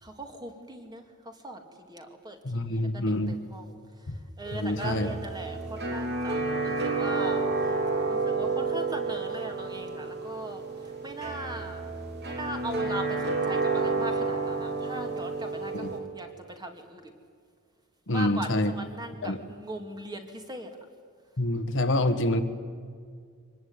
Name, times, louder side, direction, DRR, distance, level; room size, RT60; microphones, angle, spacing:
voice 1, 0.0-6.4 6.6-11.9 12.2-17.1 18.1-20.8, right 1 dB, 20° right, 4 dB, 2.5 m, -40 dB
voice 2, 2.4-3.4 4.5-5.1 15.7-15.9 18.1-18.7 19.2-19.4 21.4-22.4, left 1 dB, 60° left, 8 dB, 1.6 m, -26 dB
sound 1, 4.5-16.0, right 3 dB, 50° right, 3.3 m, -30 dB
24.5 x 20.0 x 9.7 m, 2.1 s
head